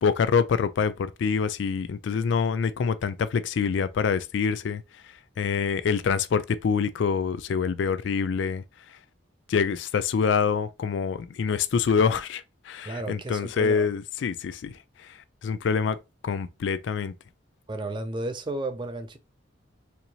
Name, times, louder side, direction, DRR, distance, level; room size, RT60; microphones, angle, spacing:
voice 1, 0.0-4.8 5.4-8.6 9.5-14.7 15.4-16.0 16.2-17.1, left 6 dB, 70° left, 0.3 m, -25 dB
voice 2, 12.9-13.9 17.7-19.2, right 2 dB, 25° right, 0.4 m, -33 dB
4.5 x 2.6 x 2.7 m
head